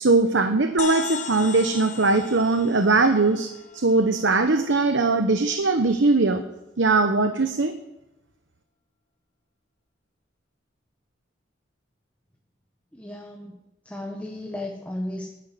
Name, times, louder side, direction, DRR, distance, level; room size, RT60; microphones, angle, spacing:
voice 1, 0.0-6.4 6.8-7.7, right 3 dB, 70° right, 7 dB, 1.0 m, -20 dB
sound 1, 0.8-4.5, left 5 dB, 40° left, 1.1 m, -36 dB
voice 2, 12.9-13.6 13.8-15.3, left 1 dB, 10° left, 0 dB, 1.5 m, -34 dB
12.0 x 10.5 x 9.2 m, 0.94 s
head